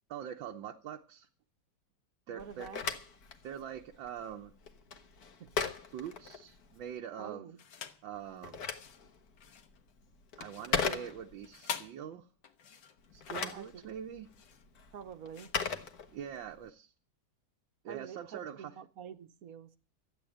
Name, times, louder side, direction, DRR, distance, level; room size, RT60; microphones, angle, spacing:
voice 1, 0.1-1.3 2.3-2.7 3.4-4.5 5.9-7.5 8.0-8.6 10.4-12.3 13.1-14.3 16.1-16.9 17.8-18.7, right 9 dB, 80° right, 1.7 m, -43 dB
voice 2, 2.3-2.9 5.4-5.5 7.2-7.6 13.3-13.8 14.9-15.6 17.9-19.7, right 8 dB, 55° right, 1.3 m, -47 dB
Telephone, 2.4-6.9 8.1-11.6 13.0-16.6, left 6 dB, 55° left, 1.7 m, -39 dB
sound 1, 7.6-8.1 8.6-16.5, left 7 dB, 75° left, 1.9 m, -47 dB
14.0 x 8.9 x 8.5 m
omnidirectional pair, 2.0 m